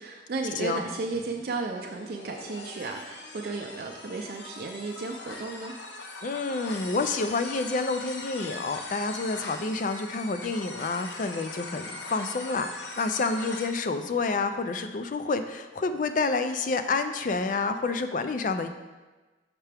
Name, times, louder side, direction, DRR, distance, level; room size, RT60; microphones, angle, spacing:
voice 1, 0.0-5.8, right 3 dB, 55° right, 1 dB, 0.4 m, -34 dB
sound 1, 1.1-13.7, left 3 dB, 75° left, 0.8 m, -41 dB
voice 2, 6.2-18.7, left 3 dB, 45° left, 9 dB, 0.4 m, -29 dB
5.8 x 5.6 x 3.4 m, 1.2 s
head